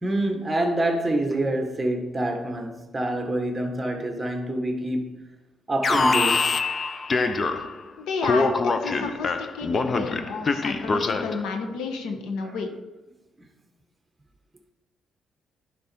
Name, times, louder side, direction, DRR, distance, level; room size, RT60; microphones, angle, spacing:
voice 1, 0.0-5.2 5.7-6.5 10.7-10.9 12.4-12.5 13.4-13.5, right 1 dB, 20° right, 1.4 m, -27 dB
Alarm, 5.8-7.8 8.2-11.5, left 4 dB, 35° left, 0.6 m, -24 dB
voice 2, 8.0-12.7, left 4 dB, 85° left, 1.2 m, -31 dB
10.5 x 5.4 x 4.4 m
cardioid pair, 90°, 0 cm